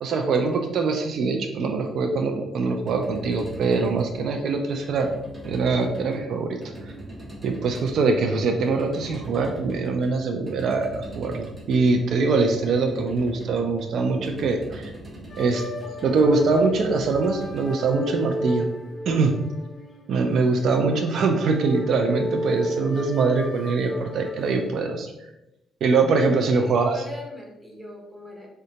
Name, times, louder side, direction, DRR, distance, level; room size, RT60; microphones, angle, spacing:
voice 1, 0.0-5.1 5.4-6.6 7.4-14.9 15.4-15.6 16.0-18.7 19.1-19.3 20.1-25.1 25.8-27.0, right 4 dB, 65° right, 3 dB, 0.4 m, -23 dB
sound 1, 2.6-18.8, right 1 dB, 25° right, 1.0 m, -42 dB
sound 2, 15.3-24.8, equal, 40° left, 0.5 m, -34 dB
voice 2, 26.4-28.5, left 1 dB, ahead, -2 dB, 1.0 m, -39 dB
3.6 x 2.2 x 2.8 m, 0.92 s
cardioid pair, 90°, 0 cm